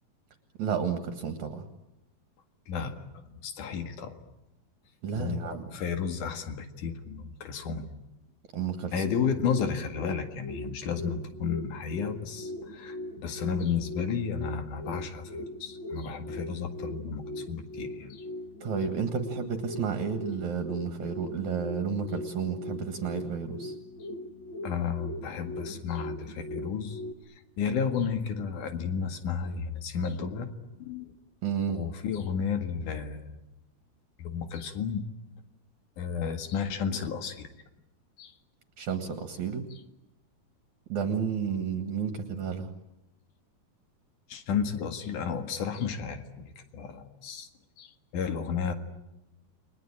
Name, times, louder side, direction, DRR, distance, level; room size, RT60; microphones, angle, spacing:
voice 1, 0.6-1.7 5.0-5.7 8.5-9.3 18.6-23.7 31.4-31.8 38.8-39.7 40.9-42.7, right 6 dB, 55° right, 8 dB, 2.8 m, -31 dB
voice 2, 2.7-4.1 5.2-7.9 8.9-18.3 24.6-27.0 27.6-31.1 31.7-33.4 34.2-35.1 36.0-37.5 38.2-38.3 44.3-47.5 47.8-48.7, left 6 dB, 60° left, 7 dB, 3.2 m, -32 dB
sound 1, 8.7-27.1, left 1 dB, 40° left, 2.0 m, -40 dB
29.5 x 22.5 x 8.8 m, 0.92 s
omnidirectional pair, 4.5 m